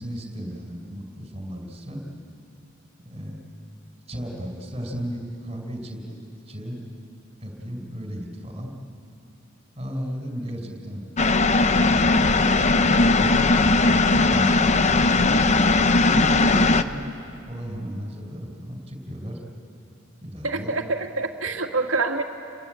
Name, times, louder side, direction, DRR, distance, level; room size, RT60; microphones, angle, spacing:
voice 1, 0.0-2.0 3.0-3.4 4.1-6.8 7.4-8.7 9.8-11.1 11.5-15.3 16.1-19.4 20.2-20.7, equal, 30° right, 2 dB, 4.5 m, -35 dB
sound 1, 11.2-16.8, left 3 dB, 35° left, 0.7 m, -18 dB
voice 2, 20.4-22.2, right 3 dB, 75° right, 4 dB, 2.0 m, -26 dB
29.5 x 22.0 x 9.0 m, 2.6 s
head